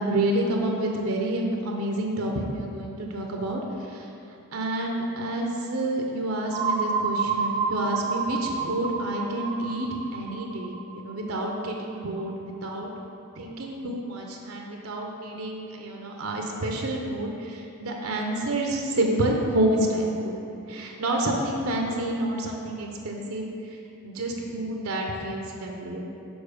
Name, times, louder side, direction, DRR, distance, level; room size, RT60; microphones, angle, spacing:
voice 1, 0.1-3.6 3.9-4.1 4.5-12.9 13.4-20.4 20.7-23.5 24.0-26.1, right 1 dB, 70° right, 0 dB, 0.8 m, -28 dB
sound 1, 6.5-12.2, right 5 dB, 20° right, 0.4 m, -30 dB
7.1 x 4.3 x 5.1 m, 2.7 s
head